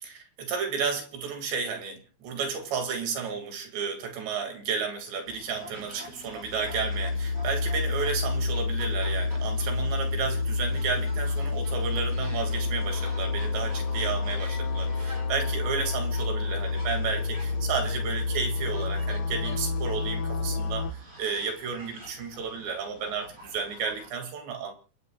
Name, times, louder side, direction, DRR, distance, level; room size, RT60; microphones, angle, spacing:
voice 1, 0.0-24.7, right 5 dB, 80° right, 4 dB, 4.7 m, -32 dB
sound 1, 5.2-24.1, right 1 dB, 20° right, 5.1 m, -48 dB
sound 2, 6.4-20.9, left 3 dB, 70° left, 2.3 m, -29 dB
29.5 x 15.5 x 2.4 m, 0.36 s
omnidirectional pair, 4.9 m